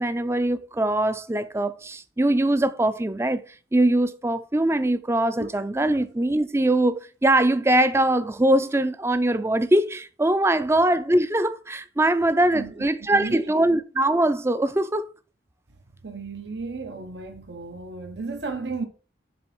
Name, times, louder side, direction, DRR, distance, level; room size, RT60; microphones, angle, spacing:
voice 1, 0.0-3.4 3.7-15.0, right 1 dB, 15° right, 0.5 m, -22 dB
voice 2, 12.5-13.7 16.0-18.9, right 3 dB, 80° right, 1.0 m, -34 dB
7.6 x 3.4 x 6.1 m
head